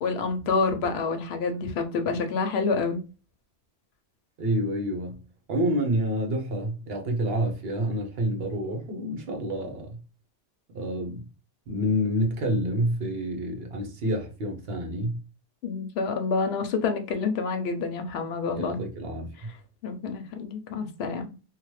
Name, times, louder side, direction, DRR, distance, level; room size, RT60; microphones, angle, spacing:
voice 1, 0.0-3.0 15.6-18.8 19.8-21.2, left 4 dB, 75° left, 0.9 m, -28 dB
voice 2, 4.4-5.2 5.5-10.0 10.7-11.2 11.7-15.2 18.5-19.3, equal, 65° right, 1.0 m, -28 dB
2.9 x 2.1 x 3.0 m
omnidirectional pair, 1.1 m